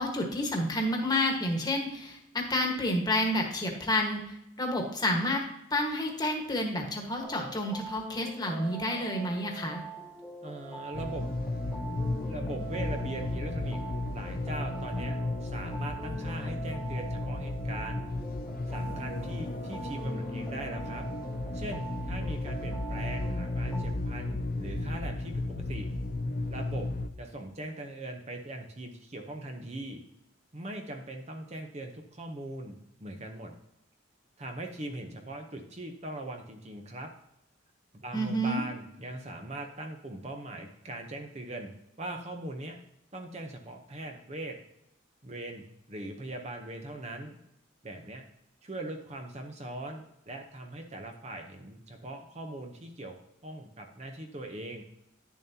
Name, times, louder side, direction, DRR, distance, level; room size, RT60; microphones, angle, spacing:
voice 1, 0.0-5.4 5.7-9.8 38.1-38.6, left 1 dB, 20° left, 1 dB, 1.4 m, -29 dB
sound 1, 7.2-23.9, right 4 dB, ahead, 0.8 m, -44 dB
voice 2, 10.4-11.3 12.2-13.8 14.1-18.1 18.7-21.0 21.5-25.9 26.5-26.9 27.2-30.0 30.5-33.5 34.4-37.1 37.9-41.7 42.0-42.8 43.1-44.6 45.2-47.4 47.8-48.2 48.6-53.2 53.4-54.8, right 1 dB, 35° right, 4 dB, 0.8 m, -40 dB
sound 2, 10.9-27.1, left 2 dB, 45° left, 0.5 m, -34 dB
10.5 x 7.2 x 2.8 m, 0.81 s
head